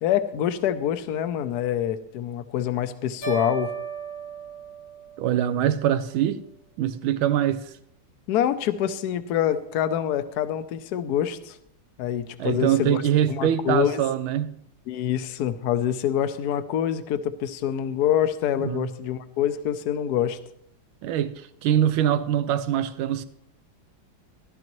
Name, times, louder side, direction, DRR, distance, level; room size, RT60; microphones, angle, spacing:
voice 1, 0.0-3.7 8.3-11.6 12.0-13.0 13.3-14.1 14.9-20.4, left 10 dB, 65° left, 1.0 m, -26 dB
sound 1, 3.2-5.5, right 7 dB, 85° left, 5.2 m, -35 dB
voice 2, 5.2-6.4 6.8-7.7 12.4-14.5 18.6-18.9 21.0-23.2, right 10 dB, 80° right, 1.4 m, -23 dB
15.0 x 12.0 x 3.0 m
omnidirectional pair, 2.2 m